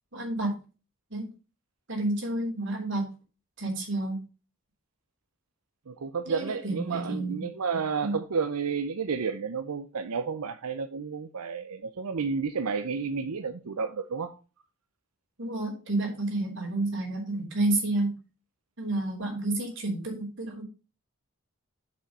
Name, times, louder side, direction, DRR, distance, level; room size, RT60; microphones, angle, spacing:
voice 1, 0.1-0.6 1.1-1.3 1.9-3.1 3.6-4.2 6.3-7.4 8.0-8.2 15.4-18.1 18.8-20.6, right 2 dB, 55° right, 3.5 m, -30 dB
voice 2, 5.9-14.4, right 5 dB, 90° right, 0.6 m, -31 dB
7.1 x 6.0 x 5.2 m
head